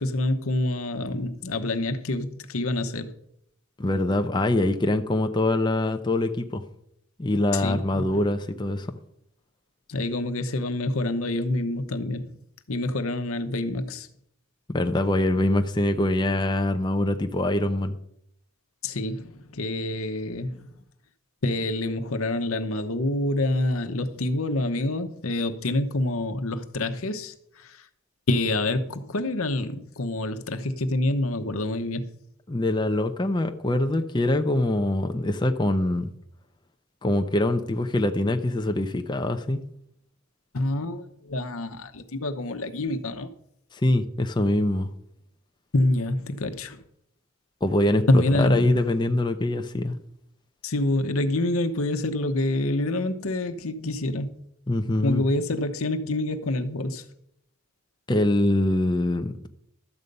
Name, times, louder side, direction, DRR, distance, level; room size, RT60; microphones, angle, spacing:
voice 1, 0.0-3.1 7.5-8.2 9.9-12.4 12.7-14.1 18.8-20.7 21.4-27.9 28.3-32.0 40.5-43.3 45.7-46.8 48.1-48.8 50.6-54.5 55.0-57.1, left 2 dB, 80° left, 1.0 m, -27 dB
voice 2, 3.8-6.6 7.2-8.9 14.7-18.0 32.5-36.1 37.0-39.6 43.7-44.9 47.6-48.1 48.4-50.0 54.7-55.2 58.1-59.5, left 1 dB, 20° left, 0.6 m, -24 dB
12.5 x 8.1 x 5.3 m
head